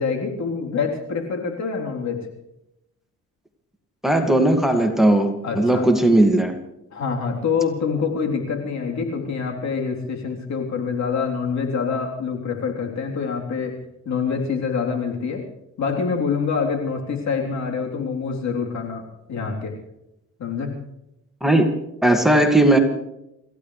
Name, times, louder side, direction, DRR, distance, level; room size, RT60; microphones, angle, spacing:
voice 1, 0.0-2.2 5.4-5.9 6.9-13.8 14.1-15.4 15.8-19.8 20.4-20.8, left 5 dB, 65° left, 1 dB, 3.7 m, -26 dB
voice 2, 4.0-6.5 21.4-22.8, right 1 dB, ahead, 4 dB, 2.2 m, -17 dB
28.0 x 15.0 x 3.3 m, 0.86 s
cardioid pair, 90°, 30 cm